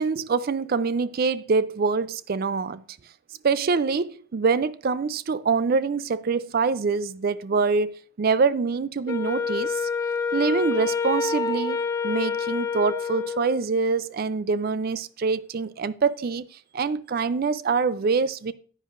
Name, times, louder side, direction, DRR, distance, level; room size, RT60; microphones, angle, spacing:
voice 1, 0.0-2.8 3.4-9.9 10.3-16.4 16.7-18.5, right 4 dB, 45° right, 0.4 m, -25 dB
Wind instrument woodwind instrument, 9.1-13.7, left 5 dB, 15° left, 0.5 m, -27 dB
10.0 x 9.5 x 2.5 m
head